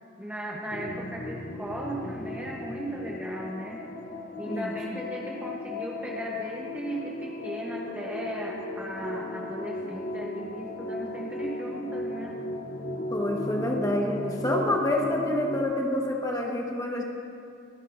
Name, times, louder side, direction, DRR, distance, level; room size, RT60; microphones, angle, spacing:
voice 1, 0.2-3.8 4.4-12.4, right 1 dB, 10° right, -3 dB, 0.9 m, -37 dB
sound 1, 0.7-15.6, left 2 dB, 45° left, 0.8 m, -36 dB
voice 2, 4.5-4.8 13.1-17.0, left 1 dB, 20° left, 0 dB, 1.3 m, -27 dB
24.5 x 10.0 x 2.6 m, 2.5 s
head